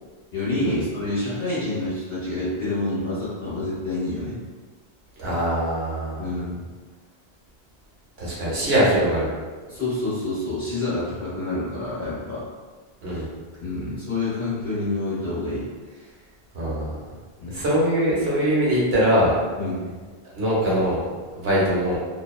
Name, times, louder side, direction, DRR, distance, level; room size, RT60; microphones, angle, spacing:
voice 1, 0.3-4.4 6.2-6.6 8.5-8.6 9.7-12.4 13.1-13.2 13.6-15.7 17.4-17.6 19.6-19.9, left 2 dB, 55° left, -11 dB, 1.1 m, -28 dB
voice 2, 5.2-6.3 8.2-9.3 13.0-13.3 16.5-16.9 17.5-19.3 20.3-21.0 21.3-22.0, equal, 70° right, -7 dB, 1.1 m, -22 dB
2.7 x 2.2 x 2.3 m, 1.4 s
omnidirectional pair, 1.1 m